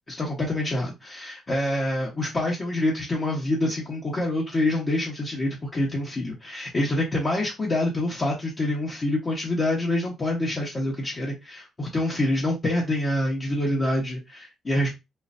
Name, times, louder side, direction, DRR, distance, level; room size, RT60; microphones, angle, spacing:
voice 1, 0.1-14.9, left 1 dB, 35° left, 1.2 m, -26 dB
3.7 x 2.4 x 2.7 m
cardioid pair, 90°, 0 cm